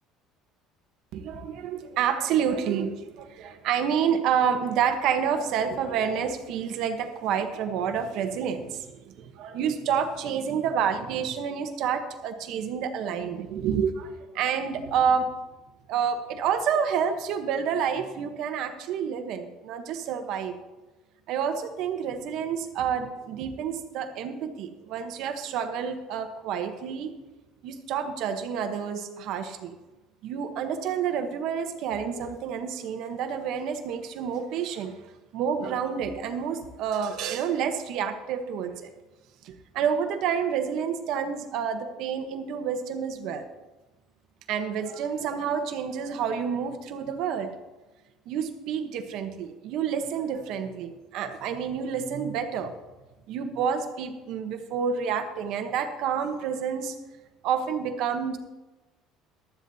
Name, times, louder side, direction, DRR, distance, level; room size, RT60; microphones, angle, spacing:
voice 1, 1.1-15.3 15.9-20.5 21.3-27.1 27.6-29.7 30.2-34.9 35.3-38.9 39.4-43.5 44.5-47.5 48.3-52.7 53.3-57.0 57.4-58.4, right 7 dB, 50° right, 7 dB, 0.9 m, -29 dB
15.0 x 12.0 x 2.7 m, 1.1 s
cardioid pair, 180°, 0 cm